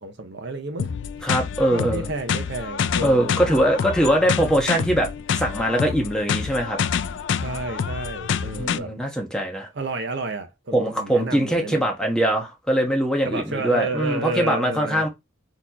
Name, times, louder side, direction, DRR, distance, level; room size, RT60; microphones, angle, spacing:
voice 1, 0.0-0.9 1.7-3.7 7.3-8.9 9.7-11.9 13.2-15.1, right 2 dB, 60° right, 0.7 m, -31 dB
sound 1, 0.8-8.8, left 7 dB, 60° left, 0.4 m, -27 dB
voice 2, 1.2-2.1 3.0-5.1 5.3-6.8 8.6-9.7 10.7-15.1, right 1 dB, 5° left, 1.1 m, -22 dB
4.2 x 3.0 x 4.1 m
head